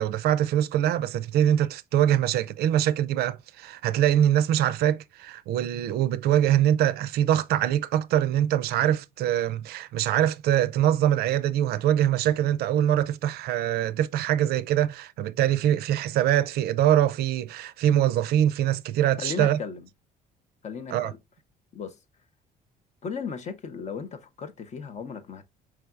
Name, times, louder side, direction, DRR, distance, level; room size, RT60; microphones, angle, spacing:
voice 1, 0.0-19.6 20.9-21.1, right 11 dB, 70° right, 0.4 m, -23 dB
voice 2, 19.2-19.9 20.6-21.2 21.7-22.0 23.0-25.4, left 6 dB, 45° left, 0.7 m, -36 dB
4.7 x 3.3 x 2.3 m
cardioid pair, 110°, 17 cm